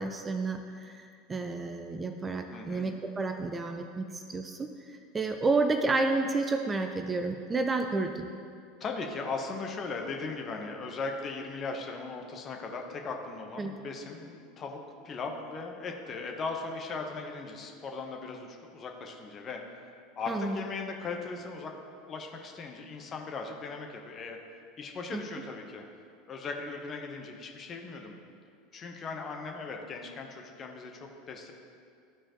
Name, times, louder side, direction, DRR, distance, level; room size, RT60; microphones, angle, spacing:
voice 1, 0.0-8.3 13.6-13.7 20.3-20.6 25.1-25.2, right 3 dB, 20° right, 6 dB, 0.4 m, -31 dB
voice 2, 2.5-2.9 8.8-19.6 20.2-24.4 24.8-25.8 26.3-28.2 28.7-31.5, left 4 dB, 35° left, 2 dB, 0.9 m, -38 dB
13.0 x 4.3 x 3.0 m, 2.3 s
figure-of-eight pair, 75°, 0 cm